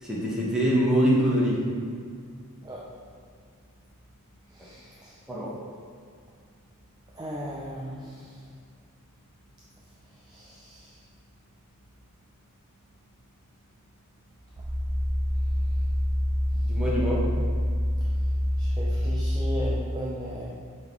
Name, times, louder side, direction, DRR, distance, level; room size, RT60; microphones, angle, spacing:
voice 1, 0.0-1.6 5.3-5.5 16.7-17.3, equal, 5° right, -6 dB, 1.2 m, -24 dB
voice 2, 4.4-5.2 7.1-8.6 9.9-11.1 14.6-14.7 15.3-15.9 16.5-16.7 18.0-20.5, equal, 20° right, -5 dB, 0.5 m, -38 dB
sound 1, 14.6-19.7, equal, 40° right, 1.0 m, -26 dB
6.5 x 3.6 x 4.6 m, 2.1 s
head